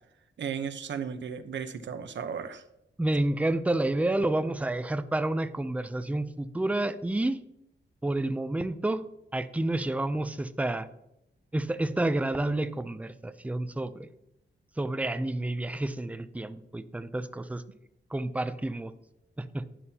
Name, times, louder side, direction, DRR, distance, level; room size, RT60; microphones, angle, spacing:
voice 1, 0.4-2.6, right 7 dB, 70° right, 9 dB, 1.0 m, -35 dB
voice 2, 3.0-7.4 8.0-9.0 9.3-10.9 11.5-14.1 14.8-17.6 18.1-18.9 19.4-19.6, right 2 dB, 5° right, 11 dB, 0.5 m, -29 dB
11.0 x 10.5 x 2.9 m, 0.85 s
wide cardioid pair, 145°, 19 cm